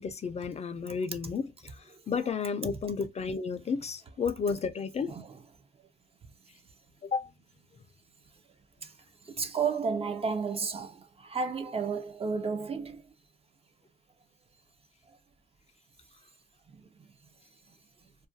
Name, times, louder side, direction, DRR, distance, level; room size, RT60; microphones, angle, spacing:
voice 1, 0.0-1.5 2.1-5.1 7.0-7.3, left 5 dB, 35° left, 0.4 m, -32 dB
voice 2, 9.3-13.0 16.7-16.8, right 5 dB, 30° right, 0.4 m, -32 dB
2.4 x 2.2 x 2.5 m
cardioid pair, 90°, 20 cm